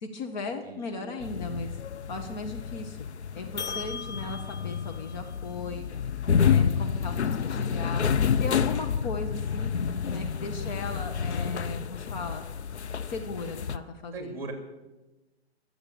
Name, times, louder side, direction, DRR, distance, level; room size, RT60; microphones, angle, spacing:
voice 1, 0.0-1.7 2.1-3.0 3.3-5.9 6.4-8.0 8.4-9.8 10.1-12.4 13.1-14.4, left 3 dB, 45° left, 5 dB, 1.5 m, -37 dB
voice 2, 0.6-1.1 14.1-14.5, right 3 dB, 10° right, 5 dB, 3.0 m, -39 dB
sound 1, 1.2-13.8, left 7 dB, 85° left, 0.8 m, -29 dB
23.0 x 8.1 x 6.8 m, 1.1 s
hypercardioid pair, 135°, 33 cm